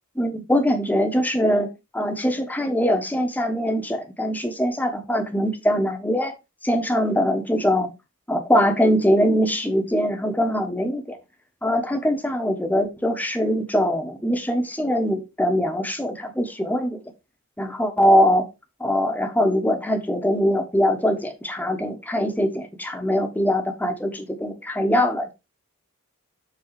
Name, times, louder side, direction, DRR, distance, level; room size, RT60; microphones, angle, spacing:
voice 1, 0.1-6.3 6.6-7.9 8.3-11.2 11.6-17.0 17.6-18.4 18.8-25.3, equal, 10° left, 5 dB, 1.1 m, -22 dB
7.4 x 3.9 x 4.8 m, 0.26 s
head